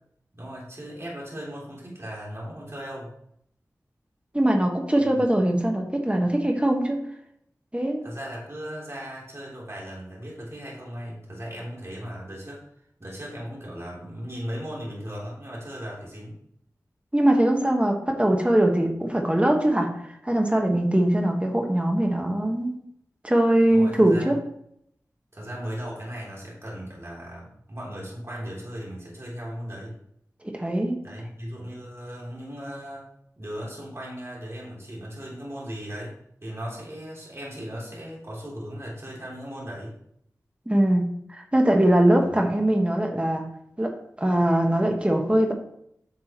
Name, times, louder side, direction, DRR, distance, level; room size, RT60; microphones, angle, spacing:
voice 1, 0.3-3.1 5.0-5.2 8.0-12.6 13.0-16.4 23.7-24.4 25.3-29.9 31.0-33.0 33.4-40.0 42.2-42.5, equal, 45° right, -5 dB, 3.5 m, -37 dB
voice 2, 4.3-7.0 7.7-8.0 17.1-19.9 20.2-22.7 23.2-24.4 30.5-31.0 40.7-43.5 43.8-43.9 44.2-45.5, right 1 dB, 20° right, 2 dB, 1.5 m, -21 dB
9.9 x 6.2 x 3.1 m, 0.72 s
wide cardioid pair, 50°, 6 cm